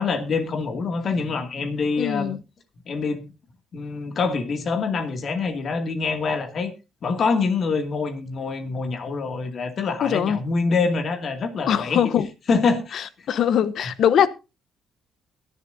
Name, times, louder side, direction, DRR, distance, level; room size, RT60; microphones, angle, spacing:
voice 1, 0.0-2.3 2.9-3.2 3.7-6.7 7.0-12.0 12.5-13.1 13.8-13.9, left 4 dB, 55° left, 6 dB, 2.3 m, -25 dB
voice 2, 2.0-2.4 10.0-10.4 11.7-12.3 12.9-13.0 13.3-14.3, left 9 dB, 70° left, 15 dB, 0.9 m, -21 dB
22.0 x 7.4 x 2.7 m, 0.28 s
cardioid pair, 90°, 0 cm